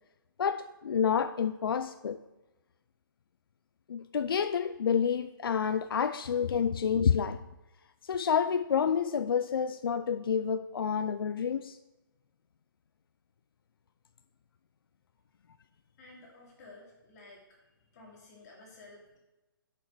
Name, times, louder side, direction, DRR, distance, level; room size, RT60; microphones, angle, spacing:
voice 1, 0.4-2.2 3.9-7.4 8.0-11.8, left 7 dB, 75° left, 0.4 m, -29 dB
voice 2, 16.0-17.6 17.9-19.2, left 2 dB, 45° left, 2.4 m, -53 dB
6.4 x 6.0 x 4.6 m
hypercardioid pair, 135°, 12 cm